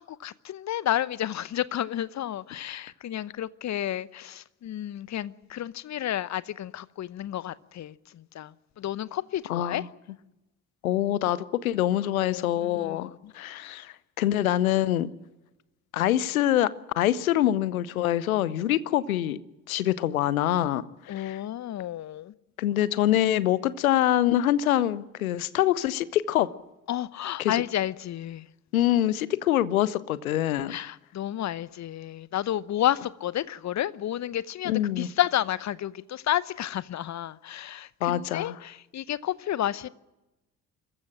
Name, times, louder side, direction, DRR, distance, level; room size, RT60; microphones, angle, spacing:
voice 1, 0.0-9.9 12.2-13.3 21.1-22.3 26.9-28.5 30.7-39.9, left 12 dB, 40° left, 0.9 m, -31 dB
voice 2, 9.5-9.8 10.8-15.1 15.9-16.7 17.0-19.4 19.7-20.9 21.2-21.4 22.6-26.5 27.4-27.5 28.7-30.7 34.7-35.1 38.0-38.5, left 12 dB, 80° left, 0.8 m, -25 dB
25.5 x 15.0 x 8.8 m
figure-of-eight pair, 45°, 41 cm